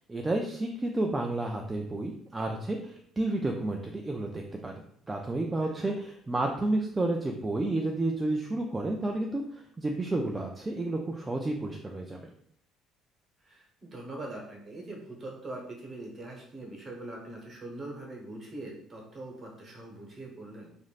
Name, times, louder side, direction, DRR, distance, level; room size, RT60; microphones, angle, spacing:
voice 1, 0.1-4.8 5.1-12.2, right 2 dB, 20° right, 1 dB, 0.3 m, -31 dB
voice 2, 13.4-20.7, right 2 dB, 40° right, -1 dB, 1.1 m, -42 dB
3.1 x 2.5 x 2.4 m, 0.65 s
supercardioid pair, 90°, 0 cm